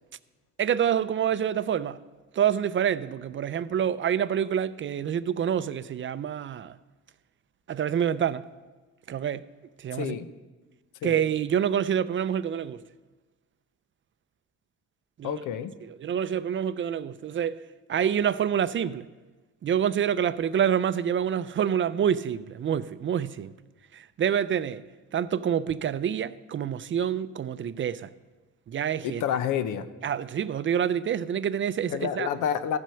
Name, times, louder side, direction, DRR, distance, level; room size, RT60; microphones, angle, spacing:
voice 1, 0.6-2.0 2.3-6.7 7.7-8.4 9.1-9.4 9.8-10.1 11.0-12.8 15.2-15.4 15.8-17.6 17.9-19.1 19.6-23.5 23.9-24.8 25.1-28.1 28.7-29.2 30.0-32.3, right 8 dB, 40° right, 0.4 m, -27 dB
voice 2, 9.9-10.3 11.0-11.2 15.2-15.7 29.2-29.9 31.9-32.8, left 8 dB, 85° left, 0.7 m, -29 dB
15.0 x 6.1 x 5.7 m
cardioid pair, 90°, 30 cm